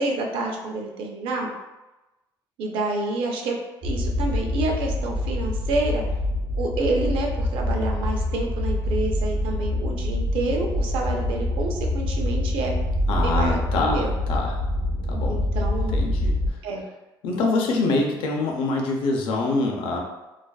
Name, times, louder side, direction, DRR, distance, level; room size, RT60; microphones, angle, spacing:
voice 1, 0.0-1.5 2.6-3.6 3.8-6.0 6.6-12.7 13.1-14.1 15.3-16.0 16.6-16.8, right 2 dB, 85° right, 1 dB, 0.5 m, -28 dB
sound 1, 3.8-16.5, left 1 dB, 45° right, 0.7 m, -25 dB
voice 2, 13.1-14.6 15.1-15.4 15.9-16.4 17.2-20.0, left 3 dB, 85° left, 1 dB, 0.5 m, -25 dB
2.4 x 2.2 x 2.3 m, 1.0 s
cardioid pair, 170°, 9 cm